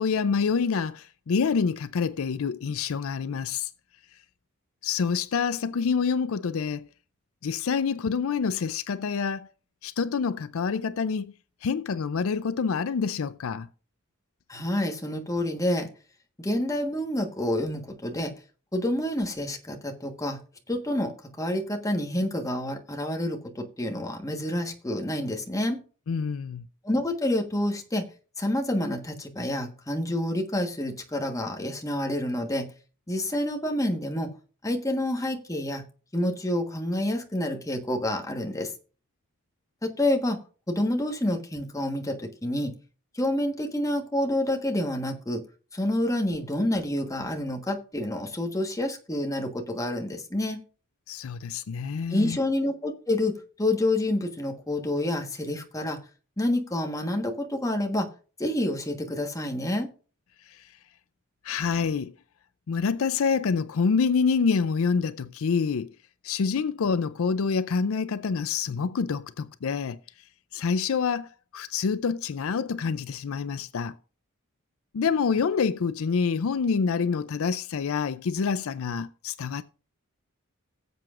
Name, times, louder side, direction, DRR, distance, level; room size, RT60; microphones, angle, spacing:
voice 1, 0.0-3.7 4.8-6.9 7.4-9.5 9.8-11.3 11.6-13.7 26.1-26.7 51.1-52.4 60.5-60.6 61.4-62.1 62.7-65.9 66.2-70.0 70.5-73.9 74.9-79.6, left 5 dB, 65° left, 0.5 m, -27 dB
voice 2, 14.5-15.9 16.4-18.3 18.7-20.4 20.7-25.8 26.8-28.1 28.4-32.7 33.1-34.3 34.6-35.9 36.1-38.7 39.8-40.4 40.7-42.8 43.1-45.4 45.7-50.6 52.1-56.0 56.4-58.1 58.4-59.9, left 1 dB, 15° left, 1.3 m, -28 dB
17.5 x 7.7 x 2.5 m
head